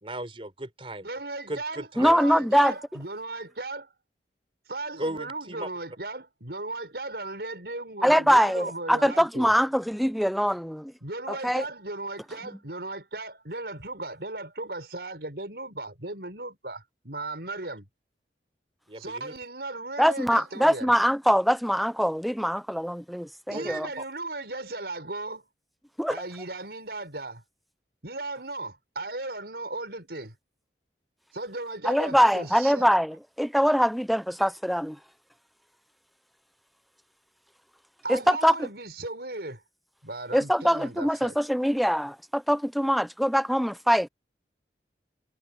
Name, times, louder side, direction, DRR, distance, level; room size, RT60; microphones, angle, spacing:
voice 1, 0.0-1.1 1.5-2.2 5.0-5.7 18.9-19.3 23.5-23.7 24.0-24.1, right 1 dB, 30° right, 3.8 m, -36 dB
voice 2, 1.0-3.9 4.7-9.5 11.0-17.9 18.9-20.9 23.5-25.4 26.1-27.4 28.0-30.4 31.3-32.9 38.0-39.6 40.0-41.4, right 2 dB, 65° right, 5.9 m, -36 dB
voice 3, 2.0-2.7 8.0-10.9 11.3-11.6 20.0-23.9 26.0-26.2 31.9-35.0 38.1-38.7 40.3-44.1, equal, ahead, 0.4 m, -23 dB
head